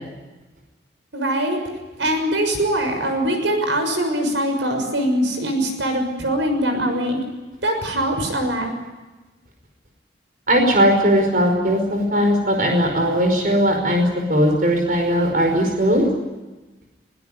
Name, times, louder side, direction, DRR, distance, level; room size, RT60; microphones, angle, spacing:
voice 1, 1.1-1.6 2.0-7.2 7.6-8.7, right 1 dB, 85° right, 5 dB, 6.5 m, -22 dB
voice 2, 10.5-14.0 14.3-16.0, equal, 50° right, 3 dB, 5.1 m, -18 dB
21.5 x 21.5 x 9.9 m, 1.2 s
head